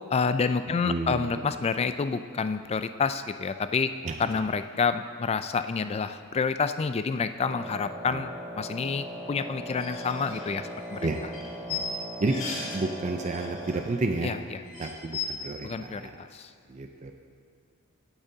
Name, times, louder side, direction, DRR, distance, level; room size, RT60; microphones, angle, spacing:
voice 1, 0.1-3.9 4.2-11.0 14.2-14.6 15.6-16.5, left 5 dB, 30° left, 11 dB, 0.3 m, -28 dB
voice 2, 0.8-1.4 4.0-4.2 8.1-8.2 11.0-11.2 11.7-11.8 12.2-12.4 12.7-14.4 14.8-16.2 16.7-17.1, right 2 dB, 35° right, 4 dB, 0.5 m, -31 dB
Wind instrument woodwind instrument, 7.4-14.0, equal, 5° right, 1.8 m, -40 dB
sound 1, 9.7-12.8 13.1-14.0 14.3-14.4 14.6-15.3, left 5 dB, 70° left, 1.9 m, -37 dB
17.0 x 8.7 x 2.8 m, 2.3 s
head